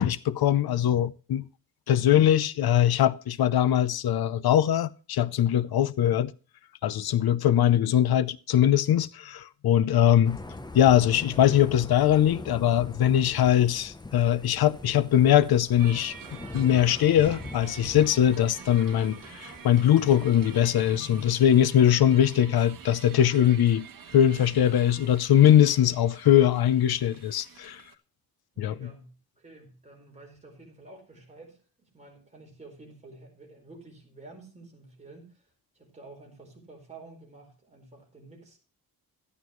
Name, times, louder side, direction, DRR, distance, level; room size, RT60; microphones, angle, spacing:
voice 1, 0.0-1.4 1.9-6.3 6.8-10.4 10.7-16.2 16.5-23.9 24.1-27.8 28.6-28.9, left 10 dB, 85° left, 0.7 m, -21 dB
voice 2, 7.1-7.4 28.5-38.6, right 2 dB, 20° right, 4.6 m, -50 dB
Thunder / Rain, 10.2-21.9, left 2 dB, 10° left, 0.7 m, -43 dB
sound 1, 15.8-27.9, right 7 dB, 65° right, 1.3 m, -47 dB
13.5 x 11.0 x 3.1 m
wide cardioid pair, 165°, 36 cm